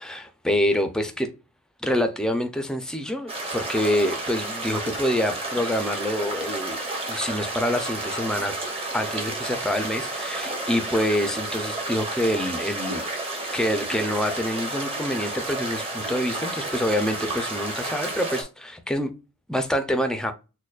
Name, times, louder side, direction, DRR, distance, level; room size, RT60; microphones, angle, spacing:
voice 1, 0.0-1.3 1.8-6.8 7.1-8.6 8.9-13.0 13.5-19.1 19.5-20.3, equal, 5° left, 0.5 m, -26 dB
sound 1, 3.3-18.4, right 2 dB, 25° right, 1.0 m, -31 dB
6.3 x 2.2 x 2.4 m
head